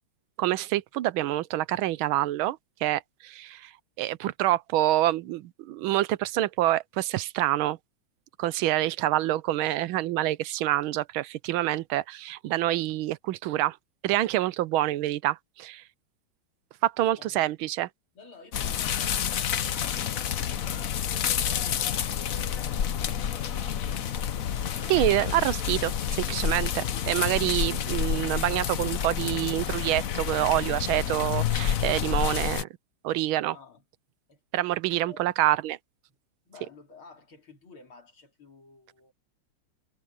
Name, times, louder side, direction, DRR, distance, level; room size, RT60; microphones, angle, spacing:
voice 1, 0.4-3.7 4.0-7.8 8.4-13.8 14.0-15.8 16.8-17.9 24.9-32.7 33.0-33.5 34.5-35.8, right 15 dB, 80° right, 1.5 m, -27 dB
voice 2, 8.6-8.9 17.2-17.5 18.1-21.1 21.4-24.1 33.5-33.8 34.3-34.4 35.0-35.3 36.5-39.1, left 3 dB, 85° left, 4.5 m, -52 dB
sound 1, 18.5-32.6, left 9 dB, 55° left, 1.0 m, -29 dB
omnidirectional pair, 2.2 m